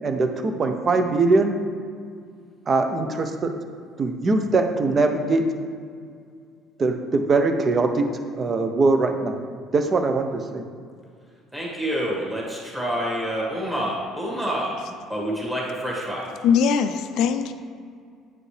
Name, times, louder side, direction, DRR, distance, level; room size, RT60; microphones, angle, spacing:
voice 1, 0.0-1.5 2.7-3.5 4.0-5.4 6.8-8.0 8.3-9.4 9.7-10.6, right 3 dB, 30° right, 6 dB, 0.6 m, -21 dB
voice 2, 11.5-16.3, equal, 10° right, -4 dB, 1.7 m, -28 dB
voice 3, 16.4-17.5, left 7 dB, 65° left, 9 dB, 0.4 m, -21 dB
8.8 x 5.1 x 3.3 m, 2.2 s
cardioid pair, 145°, 0 cm